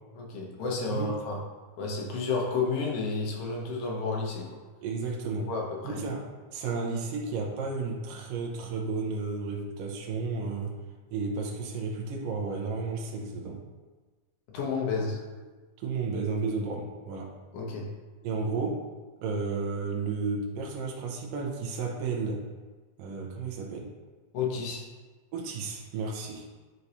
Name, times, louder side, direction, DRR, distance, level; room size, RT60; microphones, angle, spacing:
voice 1, 0.2-1.4 1.8-4.5 5.3-6.0 14.5-15.2 17.5-17.9 24.3-24.8, left 4 dB, 70° left, -2 dB, 2.2 m, -31 dB
voice 2, 4.8-5.5 5.8-6.2 6.5-10.7 11.1-13.6 15.8-17.3 18.2-18.7 19.2-22.4 23.0-23.9 25.3-26.5, right 4 dB, 80° right, 0 dB, 2.5 m, -32 dB
9.8 x 4.6 x 2.8 m, 1.3 s
omnidirectional pair, 4.0 m